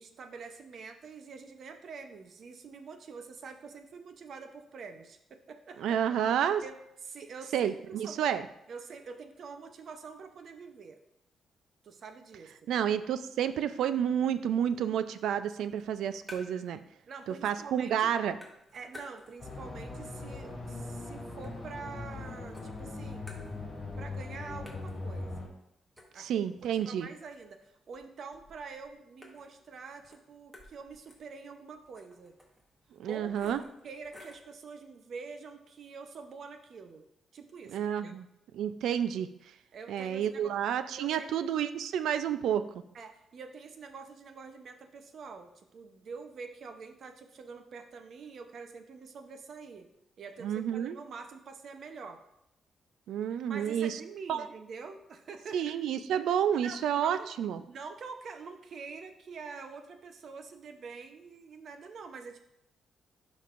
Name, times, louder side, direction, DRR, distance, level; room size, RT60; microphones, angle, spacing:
voice 1, 0.0-6.0 6.6-8.3 8.7-11.0 11.8-12.5 17.1-18.1 18.7-23.3 24.0-25.5 26.1-32.4 33.0-33.6 33.8-37.1 37.3-38.2 39.7-40.5 40.9-41.4 42.9-49.9 50.2-52.2 53.5-55.7 56.6-57.3 57.7-62.4, right 5 dB, 55° right, 7 dB, 0.7 m, -46 dB
voice 2, 5.8-6.6 7.5-8.4 12.7-16.8 17.4-18.4 26.2-27.1 33.0-33.6 37.7-38.3 38.5-39.3 39.9-42.6 50.4-51.0 53.1-54.0 54.3-54.5 55.5-57.6, right 9 dB, 85° right, 12 dB, 0.4 m, -30 dB
sound 1, 15.8-16.8 17.1-17.8 18.0-19.6 20.0-22.2 22.5-24.0 24.3-24.4 24.7-34.5, left 1 dB, 10° right, 1.3 m, -55 dB
sound 2, 19.4-25.5, left 3 dB, 35° left, 2.5 m, -40 dB
11.0 x 5.4 x 2.5 m, 0.81 s
cardioid pair, 120°, 0 cm